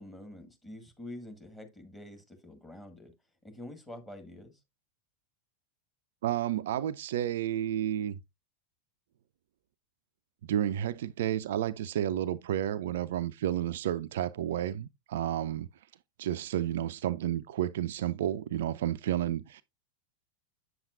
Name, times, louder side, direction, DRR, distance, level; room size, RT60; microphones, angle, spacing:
voice 1, 0.0-3.1 3.4-4.5, left 1 dB, 10° left, 1.8 m, -46 dB
voice 2, 6.2-8.2 10.5-15.7 16.2-19.6, right 11 dB, 55° right, 0.3 m, -31 dB
7.8 x 7.1 x 2.4 m
figure-of-eight pair, 90°, 0 cm